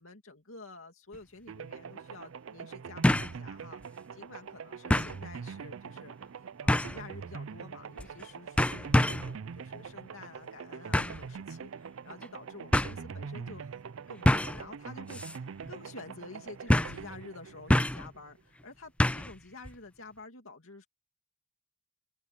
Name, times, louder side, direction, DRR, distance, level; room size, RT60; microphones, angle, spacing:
voice 1, 0.0-13.8 14.1-20.9, left 3 dB, 75° left, 2.5 m, -49 dB
sound 1, 1.1-1.2 3.0-3.4 3.8-3.9 4.9-5.2 6.7-7.0 8.0-8.2 8.6-9.3 10.9-11.2 12.2-12.3 12.7-12.9 14.2-14.6 15.1-15.4 15.6-15.7 16.7-17.0 17.7-18.1 19.0-19.3 19.6-19.7, left 1 dB, 5° left, 0.4 m, -26 dB
sound 2, 1.5-18.4, right 6 dB, 70° right, 0.4 m, -43 dB
open air
head